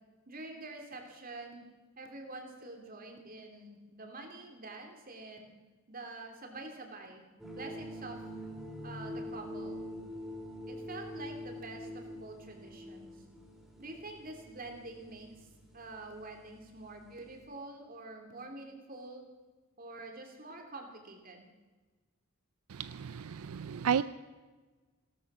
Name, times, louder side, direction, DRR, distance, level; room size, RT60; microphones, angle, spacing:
voice 1, 0.3-1.7 2.0-5.5 5.9-7.2 7.5-8.2 8.8-9.8 10.7-13.2 13.8-19.2 19.8-21.5, right 2 dB, 40° right, 3.0 m, -46 dB
sound 1, 7.4-17.5, equal, ahead, 3.8 m, -45 dB
voice 2, 22.7-24.0, right 7 dB, 80° right, 0.5 m, -32 dB
17.5 x 13.0 x 6.1 m
head